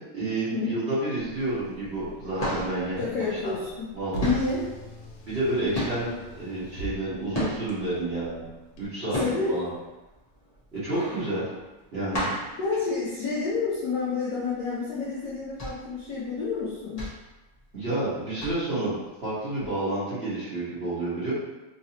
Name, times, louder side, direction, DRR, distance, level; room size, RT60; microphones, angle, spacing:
voice 1, 0.1-3.0 3.4-3.5 3.9-4.3 5.3-6.1 6.4-8.4 8.8-9.2 9.5-9.7 10.7-11.5 11.9-12.3 17.7-21.3, right 2 dB, 35° right, -12 dB, 1.4 m, -29 dB
Car, 1.2-8.9, right 3 dB, 85° left, 1.6 m, -42 dB
sound 1, 1.3-1.7 2.0-7.9 8.4-13.7 14.0-14.1 14.5-14.7 15.2-18.0 18.4-18.9 19.6-19.7, left 1 dB, 50° left, 0.4 m, -33 dB
voice 2, 3.0-3.9 4.2-4.7 9.2-9.5 12.6-17.1, left 4 dB, 65° left, -8 dB, 1.0 m, -29 dB
3.8 x 2.8 x 2.9 m, 1.1 s
omnidirectional pair, 2.4 m